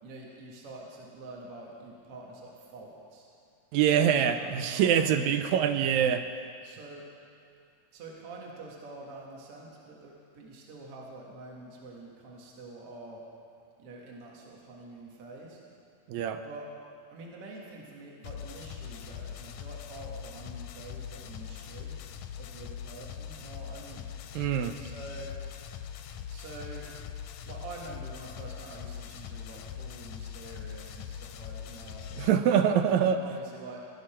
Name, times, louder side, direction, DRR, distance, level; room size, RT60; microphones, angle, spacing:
voice 1, 0.0-3.3 4.0-5.4 6.6-7.1 7.9-13.2 13.8-15.6 16.4-16.7 17.1-22.0 22.4-24.1 24.8-25.3 26.3-26.9 27.5-32.8 33.0-33.8, right 2 dB, 55° right, -2 dB, 2.5 m, -46 dB
voice 2, 3.7-6.3 16.1-16.4 24.4-24.8 32.2-33.2, right 8 dB, 80° right, 8 dB, 1.9 m, -24 dB
sound 1, 18.2-32.3, left 8 dB, 80° left, 1.9 m, -42 dB
18.0 x 12.0 x 4.4 m, 2.3 s
omnidirectional pair, 3.5 m